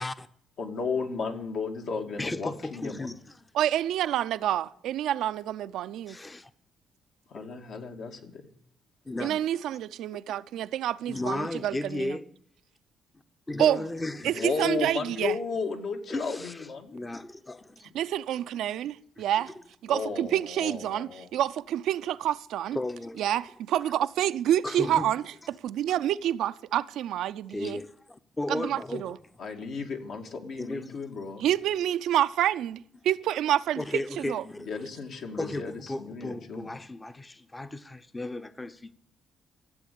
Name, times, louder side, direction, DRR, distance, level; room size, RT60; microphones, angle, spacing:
voice 1, 0.6-3.1 7.3-8.4 14.3-17.0 19.9-21.3 29.4-31.5 34.7-36.7, left 4 dB, 70° left, 2.2 m, -34 dB
voice 2, 2.2-3.5 6.1-6.5 9.1-9.5 11.1-12.3 13.5-14.8 16.1-17.9 19.4-19.5 22.7-23.2 24.6-25.1 27.5-29.2 30.6-31.0 33.8-34.9 35.4-38.9, left 2 dB, 20° left, 0.8 m, -35 dB
voice 3, 3.5-6.2 9.2-12.2 13.6-13.8 14.2-15.4 17.9-19.5 19.8-22.8 23.2-27.8 28.5-29.2 31.4-33.8 34.2-34.4, right 11 dB, 80° right, 0.5 m, -28 dB
14.0 x 7.9 x 8.5 m
cardioid pair, 90°, 0 cm